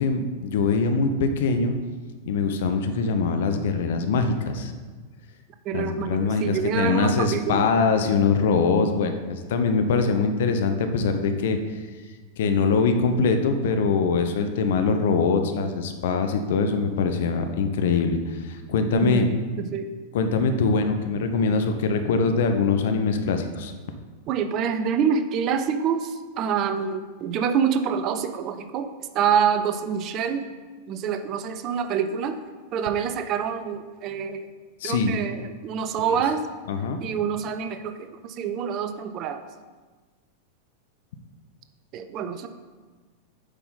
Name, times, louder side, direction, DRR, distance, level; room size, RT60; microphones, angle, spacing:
voice 1, 0.0-1.7 2.3-4.7 5.7-11.6 12.4-18.2 18.4-19.3 20.1-23.7 34.8-35.1 36.0-36.2 36.7-37.0, left 4 dB, 55° left, 7 dB, 0.6 m, -23 dB
voice 2, 5.7-7.7 18.9-19.9 24.3-30.5 30.9-32.4 32.7-34.4 34.8-36.4 37.0-39.4 41.9-42.5, right 7 dB, 35° right, 9 dB, 0.5 m, -26 dB
8.0 x 5.6 x 4.2 m, 1.4 s
figure-of-eight pair, 90°, 0 cm